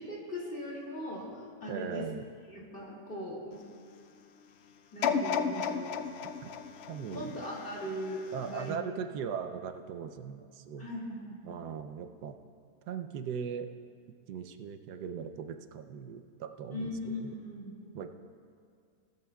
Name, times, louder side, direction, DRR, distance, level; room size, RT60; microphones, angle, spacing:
voice 1, 0.0-2.1 2.5-3.6 4.9-5.9 7.1-8.8 10.8-11.6 16.7-17.8, left 1 dB, 35° left, -4 dB, 2.6 m, -39 dB
voice 2, 1.7-2.3 6.4-6.5 6.9-7.4 8.3-10.9 11.4-12.4 12.9-13.7 14.1-17.3 17.9-18.1, right 7 dB, 85° right, 8 dB, 1.2 m, -39 dB
sound 1, 5.0-8.1 8.6-8.7, left 6 dB, 75° left, 0.5 m, -33 dB
18.5 x 13.5 x 2.3 m, 2.4 s
omnidirectional pair, 1.7 m